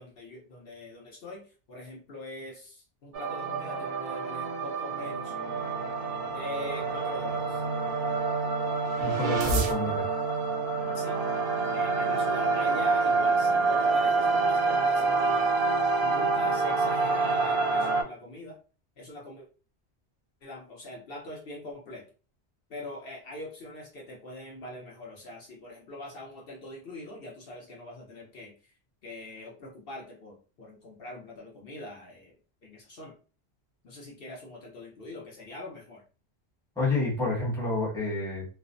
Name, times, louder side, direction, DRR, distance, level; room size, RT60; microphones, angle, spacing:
voice 1, 0.0-5.3 6.3-7.6 9.3-9.9 10.9-11.2 11.7-15.5 16.0-18.6 19.0-19.5 20.4-22.0 22.7-28.7 29.0-33.1 33.8-36.0, left 1 dB, 60° left, -2 dB, 0.9 m, -43 dB
sound 1, 3.1-18.0, right 4 dB, 70° right, 0.8 m, -27 dB
voice 2, 9.0-10.1 36.8-38.5, left 2 dB, 5° left, -4 dB, 0.8 m, -29 dB
2.4 x 2.0 x 2.5 m, 0.37 s
omnidirectional pair, 1.1 m